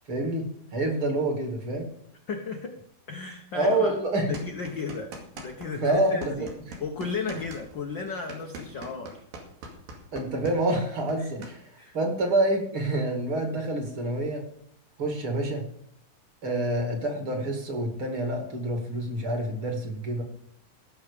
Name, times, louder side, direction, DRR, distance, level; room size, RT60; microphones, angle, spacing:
voice 1, 0.1-1.9 3.5-4.3 5.7-6.5 10.1-11.6 11.9-14.4 15.0-15.7 16.4-20.2, right 1 dB, 40° right, 3 dB, 3.0 m, -27 dB
voice 2, 2.3-2.8 3.1-4.0 4.2-6.5 6.8-9.2 11.2-11.3 11.8-12.0, left 4 dB, 75° left, 3 dB, 1.0 m, -34 dB
sound 1, 4.3-5.7 5.9-11.5, right 2 dB, 90° right, 4.1 m, -42 dB
16.5 x 6.5 x 6.8 m, 0.66 s
omnidirectional pair, 3.9 m